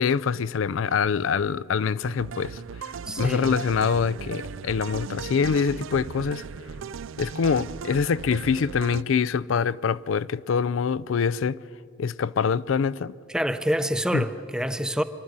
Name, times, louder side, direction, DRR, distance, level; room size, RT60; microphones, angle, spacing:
voice 1, 0.0-6.4 7.2-11.6 12.0-13.1 14.1-14.2, left 6 dB, 80° left, 0.4 m, -25 dB
sound 1, 2.0-9.0, right 6 dB, 80° right, 0.4 m, -37 dB
voice 2, 3.1-3.6 13.3-15.0, equal, 5° right, 0.6 m, -26 dB
26.0 x 12.0 x 8.7 m
head